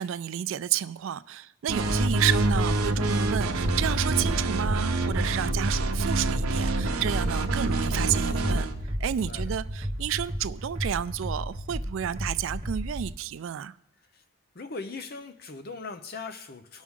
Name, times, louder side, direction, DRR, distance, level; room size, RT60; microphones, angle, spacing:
voice 1, 0.0-8.7 9.0-13.7, right 10 dB, 65° right, 0.3 m, -31 dB
sound 1, 1.7-8.7, right 2 dB, 85° right, 0.8 m, -26 dB
voice 2, 1.8-2.1 9.0-9.5 14.5-16.8, left 4 dB, 45° left, 0.7 m, -40 dB
sound 2, 4.5-13.1, equal, 25° right, 1.1 m, -34 dB
18.5 x 6.2 x 3.7 m
head